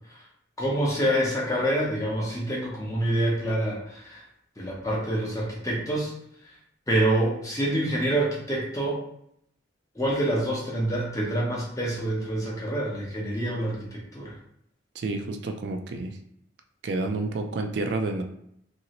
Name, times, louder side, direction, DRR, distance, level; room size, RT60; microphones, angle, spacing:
voice 1, 0.6-4.2 4.6-6.1 6.9-9.0 10.0-14.3, right 1 dB, 15° left, -4 dB, 0.7 m, -26 dB
voice 2, 14.9-16.2 16.8-18.2, right 3 dB, 60° right, 5 dB, 0.3 m, -29 dB
2.9 x 2.6 x 2.8 m, 0.72 s
head